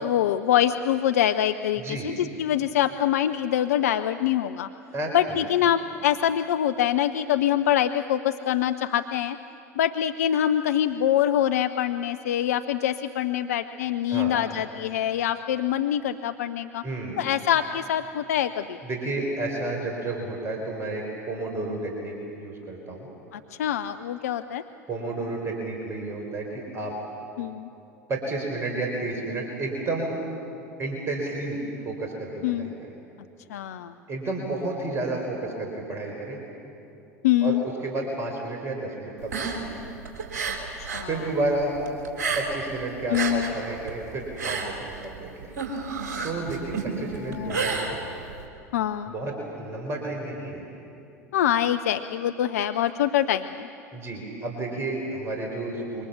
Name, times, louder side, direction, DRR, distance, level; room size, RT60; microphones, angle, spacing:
voice 1, 0.0-4.7 5.1-9.4 9.8-16.8 17.2-18.8 23.3-24.6 27.4-27.7 32.4-32.7 33.5-33.9 37.2-37.6 40.8-41.1 43.1-43.5 47.3-47.6 48.7-49.1 51.3-53.7, left 11 dB, 65° left, 9 dB, 0.6 m, -24 dB
voice 2, 1.8-2.1 4.9-5.4 14.1-14.3 16.8-17.2 18.8-23.1 24.9-26.9 28.1-30.2 30.8-32.9 34.1-36.4 37.4-39.5 41.0-41.8 42.3-45.5 46.2-48.0 49.1-50.6 53.9-56.1, right 2 dB, 30° right, 0 dB, 4.4 m, -31 dB
sound 1, 39.2-41.1 41.4-42.7 43.0-48.4, right 4 dB, 60° right, 4.0 m, -31 dB
27.5 x 24.0 x 7.4 m, 2.7 s
figure-of-eight pair, 75°, 9 cm